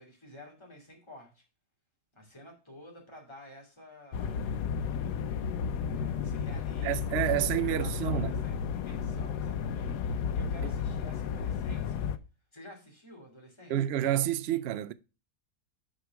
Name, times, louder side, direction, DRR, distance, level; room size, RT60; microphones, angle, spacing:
voice 1, 0.0-1.4 2.1-4.6 5.9-10.0 10.3-12.1 12.5-13.7, left 1 dB, 15° left, 2.7 m, -51 dB
sound 1, 4.1-12.2, left 7 dB, 85° left, 1.2 m, -32 dB
voice 2, 6.8-8.3 10.6-10.7 13.7-14.9, right 12 dB, 75° right, 0.6 m, -29 dB
6.6 x 4.8 x 5.9 m
omnidirectional pair, 1.7 m